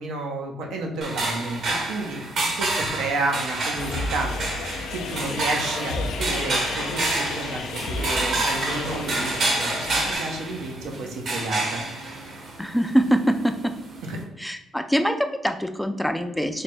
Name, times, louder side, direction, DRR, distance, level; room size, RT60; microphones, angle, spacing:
voice 1, 0.0-1.6 1.9-2.2 2.6-4.4 4.9-11.8 14.0-14.2, right 2 dB, 90° right, 1 dB, 0.7 m, -31 dB
sound 1, 1.0-14.2, right 2 dB, 60° right, 0.9 m, -29 dB
sound 2, 3.7-10.1, left 3 dB, 85° left, 0.4 m, -32 dB
voice 2, 12.6-13.7 14.4-16.6, equal, 5° left, 8 dB, 0.3 m, -24 dB
3.3 x 2.2 x 4.1 m, 0.90 s
cardioid pair, 90°, 0 cm